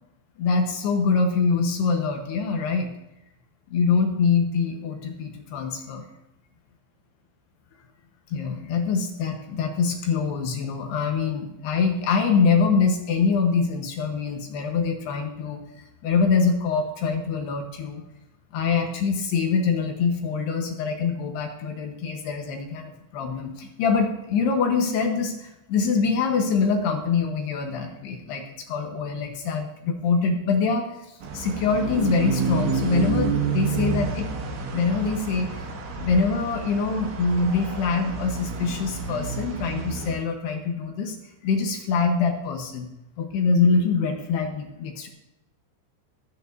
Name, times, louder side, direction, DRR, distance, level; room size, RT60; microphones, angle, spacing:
voice 1, 0.4-2.9 3.7-6.1 8.3-18.0 18.5-34.3 34.7-35.7 36.0-41.2 41.4-42.9 43.2-45.1, left 5 dB, 70° left, 3 dB, 2.7 m, -24 dB
sound 1, 31.2-40.2, right 5 dB, 65° right, 4.0 m, -29 dB
26.0 x 9.1 x 2.7 m, 0.89 s
omnidirectional pair, 5.8 m